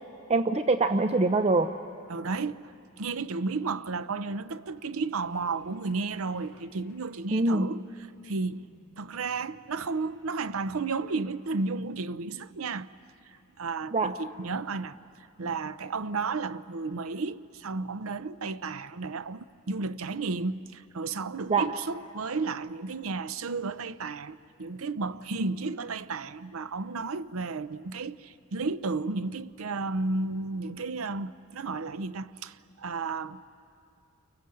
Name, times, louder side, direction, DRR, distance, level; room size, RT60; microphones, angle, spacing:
voice 1, 0.3-1.7 7.3-7.7 13.9-14.1 21.5-21.7, right 3 dB, 30° right, 0.6 m, -24 dB
voice 2, 2.1-2.6 3.0-7.8 8.2-12.9 13.6-15.0 15.4-33.4, right 4 dB, 70° right, 0.7 m, -33 dB
sound 1, 5.1-10.0, right 4 dB, 40° left, 4.5 m, -53 dB
29.5 x 24.5 x 7.7 m
head